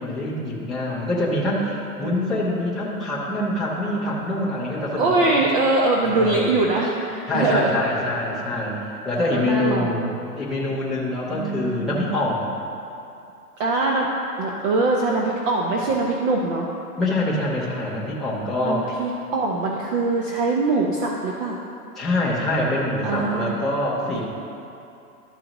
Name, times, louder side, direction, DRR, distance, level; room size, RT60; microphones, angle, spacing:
voice 1, 0.0-5.4 6.0-6.4 7.3-8.7 9.0-10.1 10.4-12.5 17.0-18.9 22.0-24.2, left 1 dB, ahead, -10 dB, 0.4 m, -25 dB
voice 2, 2.0-2.5 5.0-7.8 9.4-10.1 11.3-12.0 13.6-14.1 14.4-16.7 18.6-21.6 23.0-23.5 24.1-24.2, right 2 dB, 35° right, -1 dB, 0.7 m, -23 dB
12.0 x 4.8 x 3.0 m, 2.7 s
hypercardioid pair, 135°, 47 cm